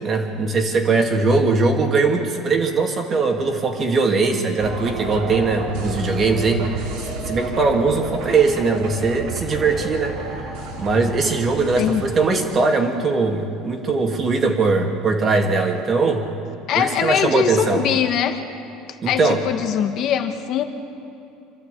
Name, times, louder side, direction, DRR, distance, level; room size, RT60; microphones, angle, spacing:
voice 1, 0.0-6.7 7.3-16.2 16.8-17.8 19.0-19.4, right 4 dB, 35° right, 3 dB, 2.6 m, -20 dB
sound 1, 4.6-12.2, right 2 dB, 80° right, 3.5 m, -31 dB
voice 2, 16.7-18.4 19.1-20.6, left 9 dB, 55° left, 7 dB, 1.6 m, -22 dB
26.0 x 12.5 x 8.5 m, 2.6 s
supercardioid pair, 120°, 0 cm